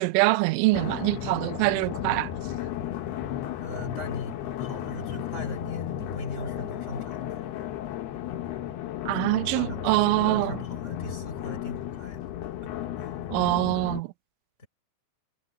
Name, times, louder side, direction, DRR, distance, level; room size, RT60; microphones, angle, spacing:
voice 1, 0.0-2.3 9.1-10.6 13.3-14.1, right 22 dB, 90° right, 3.0 m, -24 dB
sound 1, 0.7-14.0, left 11 dB, 65° left, 3.1 m, -34 dB
voice 2, 3.6-7.5 9.1-12.3 12.6-12.7 13.0-13.2 14.6-14.7, left 1 dB, 15° left, 6.0 m, -40 dB
omnidirectional pair, 5.4 m